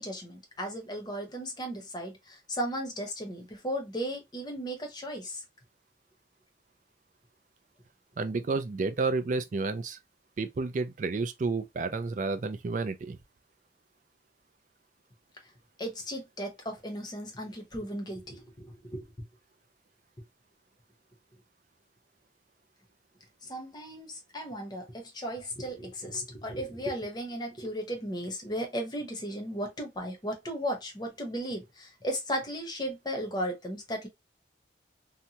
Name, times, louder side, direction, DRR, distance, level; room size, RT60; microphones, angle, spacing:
voice 1, 0.0-5.4 15.8-19.1 23.4-34.1, equal, 25° left, 0.8 m, -36 dB
voice 2, 8.2-10.0 10.4-13.2, right 3 dB, 45° right, 0.3 m, -31 dB
2.8 x 2.2 x 2.7 m
head